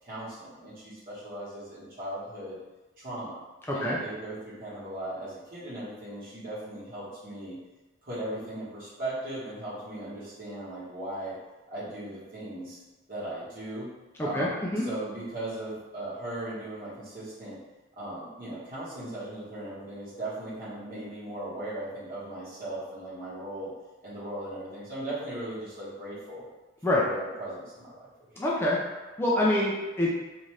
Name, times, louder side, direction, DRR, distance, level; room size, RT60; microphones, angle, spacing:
voice 1, 0.0-2.6 3.0-3.4 3.7-7.6 8.0-11.4 11.7-12.8 13.1-13.9 14.2-14.6 14.8-17.6 18.0-23.7 24.0-26.4 26.9-28.0, right 1 dB, 50° right, -9 dB, 1.2 m, -38 dB
voice 2, 14.2-14.8 26.8-27.0 28.4-28.8 29.2-30.1, left 1 dB, 15° left, -5 dB, 0.3 m, -26 dB
2.6 x 2.4 x 3.1 m, 1.1 s
head